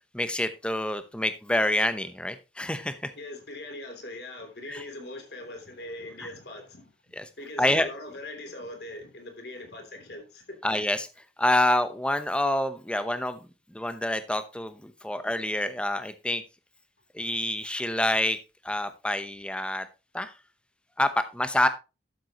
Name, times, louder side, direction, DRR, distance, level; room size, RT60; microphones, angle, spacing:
voice 1, 0.1-3.1 4.7-4.8 6.2-6.3 7.2-7.3 7.6-7.9 10.6-11.1 11.4-13.4 13.7-16.4 17.1-18.4 18.6-19.8 20.1-20.3 21.0-21.7, left 1 dB, 5° left, 0.8 m, -27 dB
voice 2, 3.2-6.9 7.4-10.8, left 1 dB, 65° left, 3.1 m, -41 dB
12.0 x 7.6 x 3.0 m
head